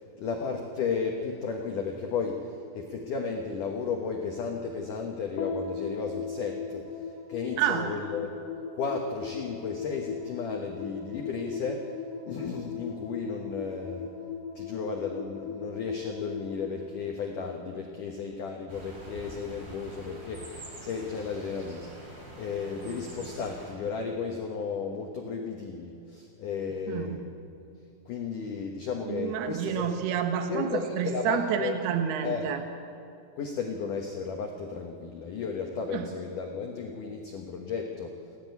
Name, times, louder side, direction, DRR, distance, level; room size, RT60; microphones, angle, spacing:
voice 1, 0.2-6.9 7.3-8.4 8.7-11.9 12.3-14.1 14.6-21.9 22.4-27.4 28.1-29.9 30.5-31.8 32.2-32.5 33.4-38.2, left 5 dB, 90° left, 2 dB, 1.8 m, -34 dB
sound 1, 5.4-17.9, left 6 dB, 50° left, 2.2 m, -39 dB
voice 2, 7.6-7.9 26.9-27.2 29.1-32.6 35.9-36.1, right 8 dB, 65° right, 6 dB, 2.9 m, -29 dB
sound 2, 18.7-23.7, right 1 dB, 20° right, 4.0 m, -46 dB
29.0 x 10.5 x 9.4 m, 2.6 s
omnidirectional pair, 5.9 m